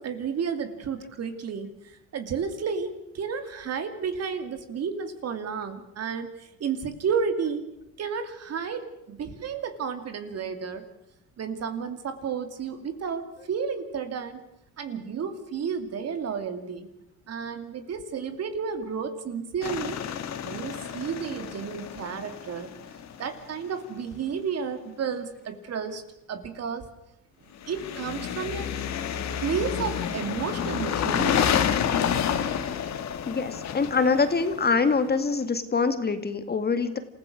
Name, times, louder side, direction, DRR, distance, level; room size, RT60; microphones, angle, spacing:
voice 1, 0.0-7.6 8.0-10.8 11.4-14.4 14.8-16.9 17.3-20.0 20.4-22.7 23.2-26.0 26.3-26.9 27.7-28.7 29.1-31.7, right 6 dB, 50° right, 8 dB, 2.6 m, -32 dB
sound 1, 19.6-23.5 27.6-35.3, left 8 dB, 55° left, 1.8 m, -29 dB
voice 2, 33.3-37.0, left 4 dB, 30° left, 9 dB, 1.9 m, -24 dB
27.5 x 15.5 x 6.4 m, 0.84 s
supercardioid pair, 85°, 32 cm